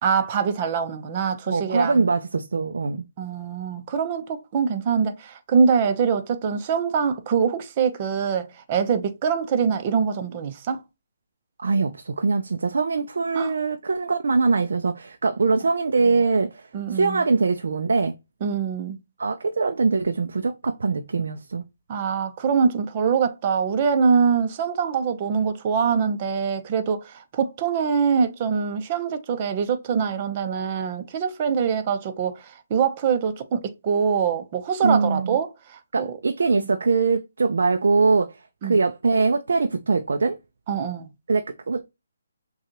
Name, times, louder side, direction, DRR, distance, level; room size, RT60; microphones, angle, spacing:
voice 1, 0.0-2.1 3.2-10.8 13.3-13.5 16.0-16.2 16.7-17.2 18.4-19.0 21.9-36.2 36.6-36.7 38.6-38.8 40.7-41.1, right 6 dB, 35° right, 0.7 m, -24 dB
voice 2, 1.5-3.0 11.6-18.1 19.2-21.6 34.8-35.4 35.9-38.4 38.6-40.4 41.3-41.9, right 4 dB, 75° right, 0.5 m, -22 dB
6.4 x 2.4 x 2.9 m
hypercardioid pair, 155°, 0 cm